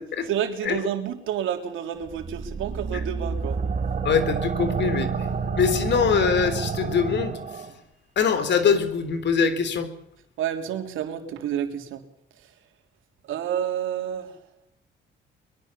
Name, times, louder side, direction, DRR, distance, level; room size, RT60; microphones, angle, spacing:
voice 1, 0.0-3.6 10.4-12.1 12.4-12.5 13.2-14.4, right 9 dB, 85° right, 6 dB, 3.3 m, -29 dB
sound 1, 2.1-7.7, right 5 dB, 40° right, 3.5 m, -29 dB
voice 2, 4.0-5.3 5.5-7.6 8.2-9.9, left 6 dB, 65° left, 10 dB, 4.0 m, -23 dB
23.5 x 22.5 x 7.0 m, 0.76 s
cardioid pair, 90°, 20 cm